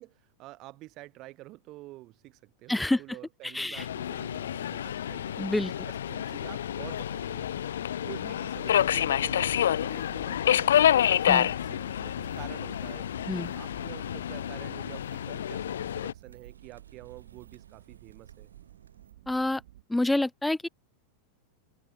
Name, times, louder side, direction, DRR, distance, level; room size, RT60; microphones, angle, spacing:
voice 1, 0.0-5.5 5.8-18.5, right 18 dB, 40° right, 5.8 m, -48 dB
voice 2, 2.7-3.0 3.5-3.8 5.4-5.7 11.3-11.5 13.3-13.5 19.3-19.6 19.9-20.7, left 2 dB, 5° left, 1.2 m, -27 dB
Subway metro underground, 3.8-16.1, left 10 dB, 65° left, 0.7 m, -28 dB
sound 1, 5.4-19.8, right 13 dB, 55° right, 6.0 m, -52 dB
sound 2, 9.4-19.1, right 6 dB, 70° right, 7.9 m, -61 dB
figure-of-eight pair, 90°, 0 cm